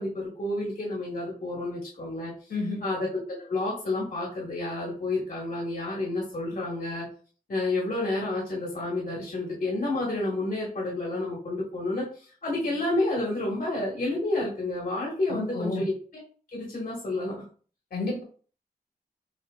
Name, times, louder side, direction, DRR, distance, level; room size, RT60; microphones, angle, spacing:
voice 1, 0.0-2.3 2.8-7.1 7.5-16.2 16.5-17.4, left 2 dB, 60° left, -4 dB, 1.7 m, -30 dB
voice 2, 2.5-2.8 15.3-15.8 17.9-18.2, left 3 dB, 80° left, -2 dB, 2.1 m, -30 dB
6.6 x 2.8 x 2.4 m, 0.41 s
cardioid pair, 65°, 17 cm